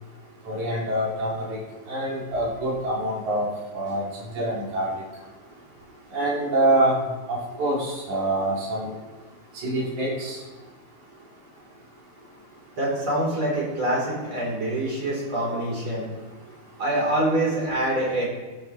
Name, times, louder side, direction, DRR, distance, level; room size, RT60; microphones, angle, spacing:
voice 1, 0.5-1.6 1.9-3.5 3.7-4.0 4.3-4.9 6.1-7.0 7.3-9.0 9.6-10.4, right 1 dB, 80° right, -5 dB, 4.4 m, -25 dB
voice 2, 12.8-16.1 16.8-18.2, right 1 dB, 40° right, -4 dB, 5.3 m, -25 dB
16.0 x 14.5 x 3.5 m, 1.2 s
omnidirectional pair, 3.3 m